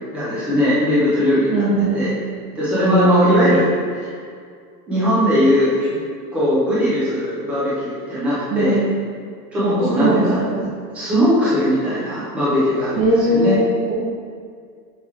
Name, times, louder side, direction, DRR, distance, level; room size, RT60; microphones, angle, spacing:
voice 1, 0.1-2.2 2.5-3.7 4.0-4.1 4.9-5.9 6.3-8.8 9.5-10.4 10.9-13.6, left 1 dB, 5° right, -10 dB, 0.4 m, -19 dB
voice 2, 1.5-2.0 2.8-3.7 8.5-8.8 9.6-9.7 10.0-10.6 13.0-13.9, right 1 dB, 35° right, -8 dB, 1.4 m, -18 dB
6.0 x 4.3 x 4.5 m, 2.1 s
supercardioid pair, 160°, 49 cm